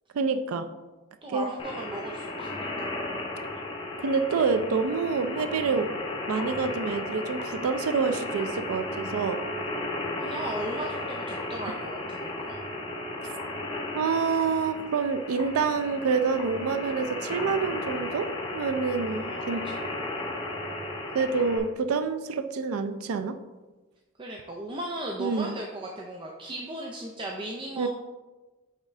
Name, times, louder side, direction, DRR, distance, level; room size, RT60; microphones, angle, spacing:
voice 1, 0.1-0.7 1.3-1.5 4.0-5.9 6.3-9.4 13.2-13.3 14.0-18.3 18.5-19.7 21.1-23.4 25.2-25.5 27.8-27.9, right 5 dB, 90° right, 9 dB, 0.4 m, -27 dB
voice 2, 1.2-3.0 10.2-12.6 19.0-20.3 24.2-27.9, right 1 dB, 25° right, -1 dB, 0.5 m, -37 dB
sound 1, 1.6-21.6, left 2 dB, 25° left, 0.7 m, -35 dB
8.5 x 3.6 x 3.2 m, 1.2 s
head